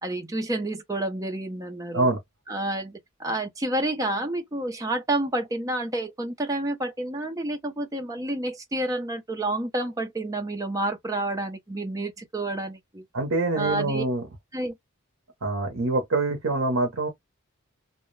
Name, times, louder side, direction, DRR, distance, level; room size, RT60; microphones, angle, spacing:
voice 1, 0.0-2.1 2.5-13.0 13.5-14.0 14.5-14.8, right 1 dB, 15° right, 0.6 m, -29 dB
voice 2, 13.1-14.2 15.4-17.1, right 2 dB, 70° right, 0.7 m, -25 dB
2.2 x 2.1 x 3.1 m
head